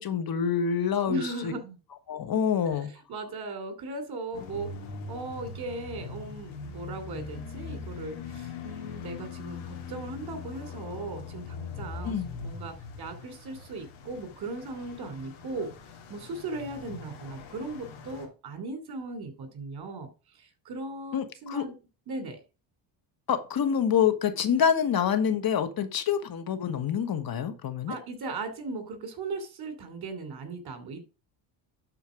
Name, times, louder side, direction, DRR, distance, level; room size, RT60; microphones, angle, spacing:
voice 1, 0.0-1.5 2.1-2.9 12.0-12.3 21.1-21.6 23.3-28.0, left 8 dB, 45° left, 1.4 m, -27 dB
voice 2, 1.1-1.8 2.6-4.7 5.1-15.7 16.1-21.7 22.1-22.4 27.9-31.0, right 3 dB, 50° right, 3.0 m, -38 dB
sound 1, 4.3-18.2, left 5 dB, 85° left, 3.7 m, -41 dB
11.0 x 4.6 x 4.9 m
cardioid pair, 95°, 48 cm